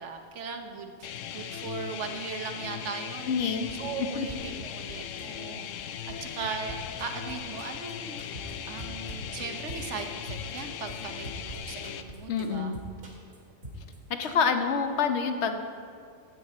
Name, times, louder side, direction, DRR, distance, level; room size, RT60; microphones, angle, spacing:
voice 1, 0.0-3.3 3.7-5.7 6.1-12.8 14.3-14.4, right 5 dB, 70° right, 5 dB, 1.3 m, -39 dB
sound 1, 1.0-12.0, left 9 dB, 80° left, 1.0 m, -39 dB
voice 2, 3.3-3.7 4.2-4.3 12.3-12.8 14.2-15.6, left 5 dB, 65° left, 7 dB, 1.1 m, -27 dB
sound 2, 3.4-3.8 4.1-4.5 4.9-5.4 5.8-6.2 6.5-6.9 7.3-7.8 8.2-8.6 8.9-9.3 9.7-10.2 10.6-11.0 11.3-11.7 12.1-12.6 13.0-13.1, right 1 dB, 40° left, 1.5 m, -45 dB
sound 3, 7.0-7.3 7.6-7.7 7.9-8.0 8.2-8.5 8.8-9.1 9.4-10.0 10.3-11.6 11.8-12.2 12.4-12.5 12.7-13.4 13.6-14.0 14.2-14.3, right 1 dB, 85° right, 2.7 m, -43 dB
15.0 x 8.8 x 4.3 m, 2.3 s
omnidirectional pair, 1.3 m